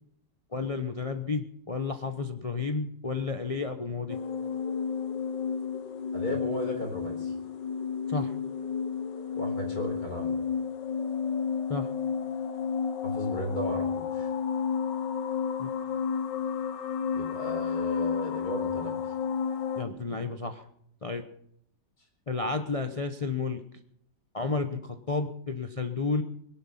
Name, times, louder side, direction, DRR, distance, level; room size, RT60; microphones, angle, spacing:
voice 1, 0.5-4.2 8.1-8.3 11.7-11.9 15.6-15.7 19.8-20.6 21.0-21.2 22.3-23.6 24.3-26.2, left 4 dB, 30° left, 7 dB, 0.6 m, -31 dB
sound 1, 4.1-19.8, left 6 dB, 85° left, 1.7 m, -31 dB
voice 2, 6.1-7.3 9.3-10.4 13.0-14.3 17.1-18.9, left 1 dB, 60° left, 3 dB, 4.8 m, -35 dB
21.0 x 11.5 x 5.7 m, 0.72 s
omnidirectional pair, 1.8 m